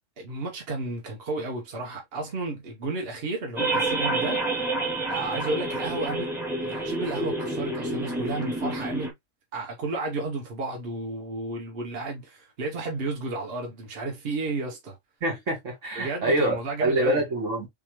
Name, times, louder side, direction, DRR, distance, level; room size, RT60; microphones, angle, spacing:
voice 1, 0.2-4.6 5.1-6.3 6.6-9.1 9.5-15.0 15.9-17.2, right 2 dB, 55° right, 1.2 m, -32 dB
sound 1, 3.6-9.1, right 2 dB, 5° right, 0.6 m, -28 dB
voice 2, 15.2-17.7, right 1 dB, 80° right, 2.0 m, -26 dB
3.6 x 3.0 x 3.0 m
omnidirectional pair, 1.3 m